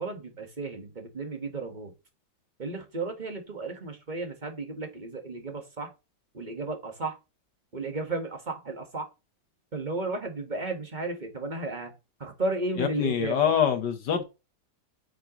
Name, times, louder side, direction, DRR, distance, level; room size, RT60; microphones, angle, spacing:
voice 1, 0.0-1.9 2.6-5.9 6.3-7.2 7.7-9.1 9.7-13.5, right 2 dB, 25° right, 1.8 m, -34 dB
voice 2, 12.8-14.2, left 8 dB, 85° left, 2.0 m, -25 dB
8.0 x 7.6 x 3.2 m
omnidirectional pair, 1.8 m